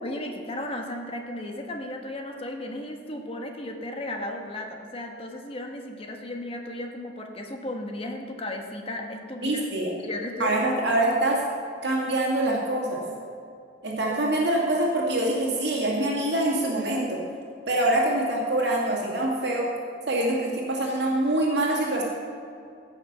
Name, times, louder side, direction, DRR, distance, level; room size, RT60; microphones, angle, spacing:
voice 1, 0.0-9.6 10.0-10.6, left 1 dB, 30° left, 3 dB, 1.4 m, -35 dB
voice 2, 9.4-9.9 10.4-11.4 11.8-13.0 13.8-17.2 17.7-19.7 20.1-22.0, right 1 dB, 65° right, -3 dB, 2.4 m, -25 dB
16.0 x 6.6 x 6.8 m, 2.4 s
head